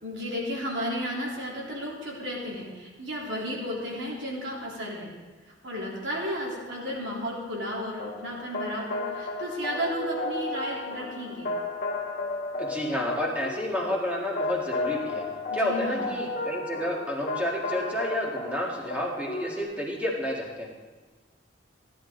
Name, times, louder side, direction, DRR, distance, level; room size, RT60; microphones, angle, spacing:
voice 1, 0.0-5.1 5.6-11.5 15.5-16.1, equal, 80° right, -4 dB, 3.5 m, -33 dB
sound 1, 8.0-19.6, left 2 dB, 45° left, 2.1 m, -33 dB
voice 2, 12.6-15.2 15.5-20.7, left 1 dB, 5° right, -2 dB, 1.8 m, -30 dB
15.5 x 10.5 x 3.9 m, 1.3 s
head